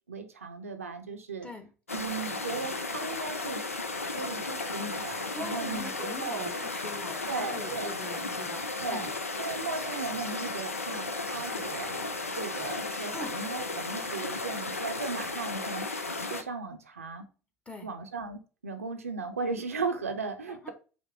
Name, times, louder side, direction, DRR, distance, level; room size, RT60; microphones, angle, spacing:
voice 1, 0.1-1.5 1.9-3.6 4.1-6.5 7.3-7.9 8.8-9.1 9.4-12.0 12.3-15.9 16.2-17.3 17.8-20.7, right 4 dB, 85° right, 6 dB, 0.5 m, -37 dB
sound 1, 1.9-16.4, left 3 dB, 90° left, 0.4 m, -34 dB
voice 2, 5.3-9.1 13.1-13.3 17.7-17.9 20.5-20.7, left 2 dB, 15° left, 6 dB, 1.0 m, -42 dB
5.0 x 2.1 x 4.8 m, 0.35 s
figure-of-eight pair, 70°, 7 cm